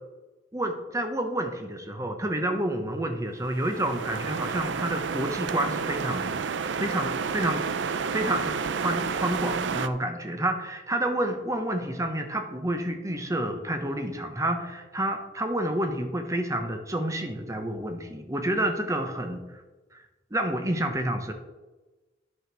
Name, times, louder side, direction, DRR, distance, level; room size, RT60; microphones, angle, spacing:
voice 1, 0.5-6.5 6.8-7.6 8.1-19.4 19.9-20.0 20.3-21.3, right 1 dB, 15° right, 6 dB, 1.0 m, -29 dB
sound 1, 3.4-9.9, right 5 dB, 75° right, 0.5 m, -30 dB
9.8 x 5.1 x 6.0 m, 1.1 s
head